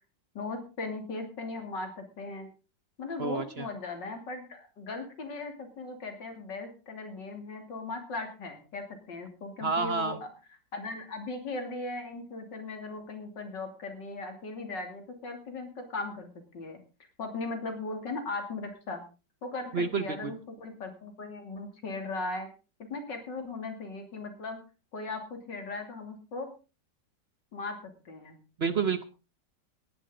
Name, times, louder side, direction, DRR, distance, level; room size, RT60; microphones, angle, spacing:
voice 1, 0.4-2.5 3.0-10.3 10.7-16.8 17.2-19.0 19.4-22.5 22.8-24.6 24.9-26.5 27.5-28.4, left 3 dB, 70° left, 5 dB, 3.5 m, -38 dB
voice 2, 3.2-3.7 9.6-10.2 19.7-20.3 28.6-29.0, right 5 dB, 50° right, 12 dB, 0.8 m, -29 dB
18.0 x 11.0 x 3.9 m, 0.32 s
omnidirectional pair, 2.0 m